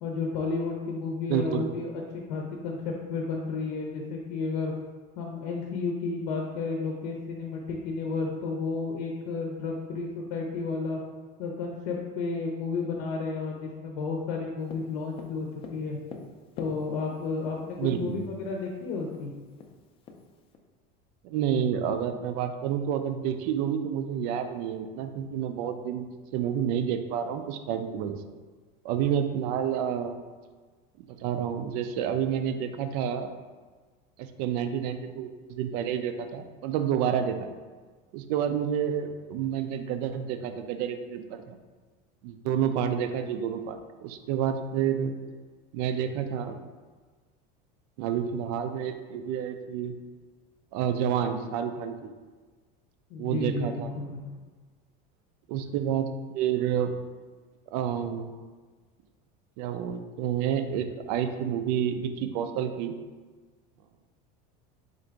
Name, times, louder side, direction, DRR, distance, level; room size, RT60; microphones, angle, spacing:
voice 1, 0.0-4.7 5.2-11.0 11.4-15.5 15.7-16.0 16.6-19.3 53.1-54.2, left 4 dB, 80° left, 0 dB, 0.6 m, -32 dB
voice 2, 1.3-1.7 17.8-18.3 21.2-28.2 28.8-30.2 31.0-33.3 34.2-37.5 38.1-41.6 42.2-45.1 45.7-46.5 48.0-50.0 50.7-52.1 53.2-53.9 55.5-56.9 57.7-58.3 59.6-62.9, right 8 dB, 65° right, 8 dB, 0.4 m, -29 dB
Tap, 14.7-17.3 18.3-18.4 18.7-18.8 19.1-20.6, left 4 dB, 25° left, 0.4 m, -44 dB
3.9 x 2.5 x 4.5 m, 1.4 s
cardioid pair, 150°, 21 cm